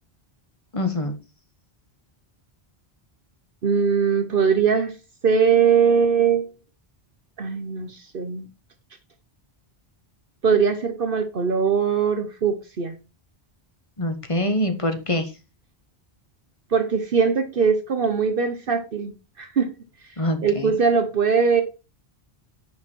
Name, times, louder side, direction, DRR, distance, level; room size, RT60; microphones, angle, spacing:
voice 1, 0.7-1.2 14.0-15.3 20.2-20.7, left 1 dB, 30° left, 1.5 m, -24 dB
voice 2, 3.6-4.9 5.2-6.4 7.4-8.5 10.4-12.9 16.7-19.7 20.4-21.6, right 6 dB, 60° right, 1.1 m, -21 dB
10.5 x 5.5 x 4.5 m
omnidirectional pair, 1.0 m